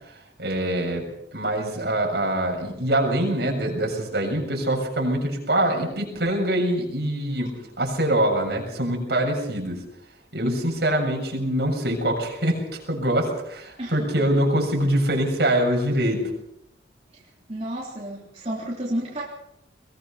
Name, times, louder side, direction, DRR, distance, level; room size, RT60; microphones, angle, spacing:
voice 1, 0.4-9.8 10.3-16.3, right 1 dB, 60° right, 1 dB, 7.0 m, -24 dB
voice 2, 17.5-19.2, right 1 dB, 35° right, -5 dB, 3.6 m, -30 dB
22.0 x 20.5 x 5.8 m, 0.80 s
head